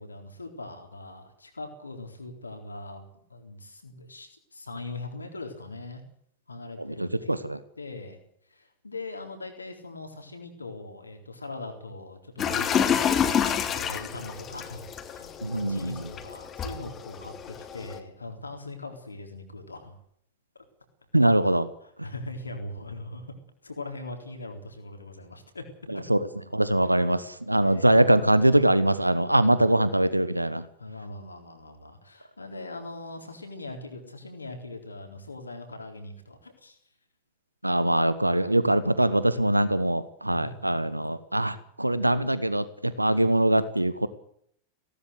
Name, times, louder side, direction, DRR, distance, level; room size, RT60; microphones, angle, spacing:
voice 1, 0.0-3.0 3.3-6.0 6.5-7.4 7.8-8.2 8.5-19.9 21.8-23.3 23.6-25.7 25.9-26.0 26.8-27.0 27.6-28.0 29.3-29.8 30.8-36.8 37.6-37.8 40.3-40.7 43.2-43.3, left 2 dB, 80° left, 4 dB, 4.0 m, -41 dB
voice 2, 7.0-7.6 15.4-16.0 21.1-21.7 26.1-26.2 26.5-30.6 37.6-44.1, right 1 dB, 85° right, 16 dB, 1.1 m, -23 dB
sound 1, 12.4-18.0, left 8 dB, 25° left, 3.1 m, -28 dB
19.0 x 18.0 x 8.2 m, 0.65 s
figure-of-eight pair, 90°, 0 cm